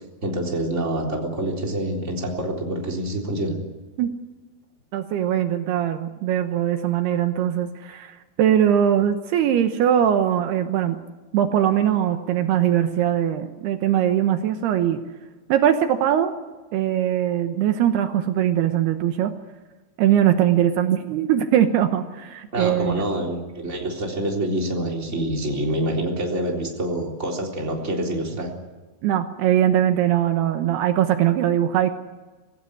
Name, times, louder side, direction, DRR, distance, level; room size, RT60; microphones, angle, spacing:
voice 1, 0.2-3.6 22.5-28.5, right 1 dB, 20° right, 0 dB, 3.6 m, -26 dB
voice 2, 4.9-11.0 11.3-15.0 15.5-16.3 16.7-19.3 20.0-23.0 29.0-31.9, right 10 dB, 75° right, 7 dB, 3.0 m, -21 dB
25.5 x 16.0 x 9.8 m, 1.3 s
omnidirectional pair, 4.9 m